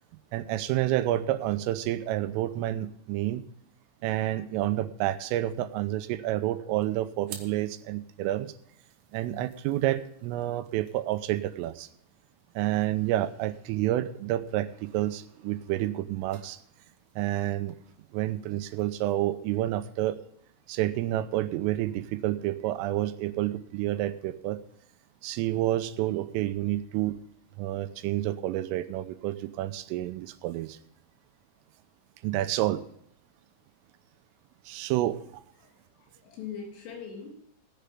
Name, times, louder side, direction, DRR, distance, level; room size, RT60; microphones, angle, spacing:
voice 1, 0.3-3.5 4.0-8.5 9.1-11.9 12.6-16.6 17.2-17.8 18.1-20.2 20.7-24.6 25.2-27.2 27.6-30.8 32.2-32.8 34.7-35.2, right 14 dB, 90° right, 11 dB, 3.4 m, -29 dB
sound 1, 6.8-19.6, right 8 dB, 65° right, 2.8 m, -55 dB
voice 2, 35.6-37.3, left 6 dB, 75° left, 1 dB, 5.5 m, -42 dB
17.5 x 10.5 x 3.6 m, 0.70 s
omnidirectional pair, 5.7 m